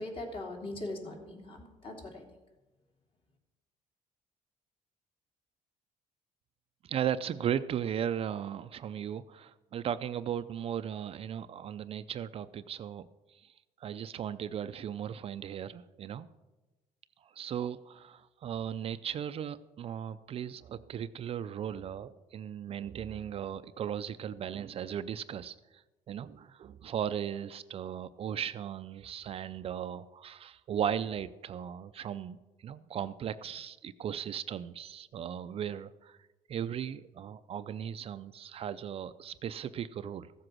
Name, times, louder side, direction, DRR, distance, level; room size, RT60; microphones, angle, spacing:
voice 1, 0.0-2.2, left 1 dB, 40° left, 1 dB, 2.9 m, -40 dB
voice 2, 6.8-13.1 13.4-13.5 13.8-16.3 17.2-25.8 26.1-36.2 36.5-40.3, right 9 dB, 45° right, 13 dB, 0.4 m, -37 dB
14.5 x 7.7 x 6.1 m, 1.1 s
cardioid pair, 130°, 14 cm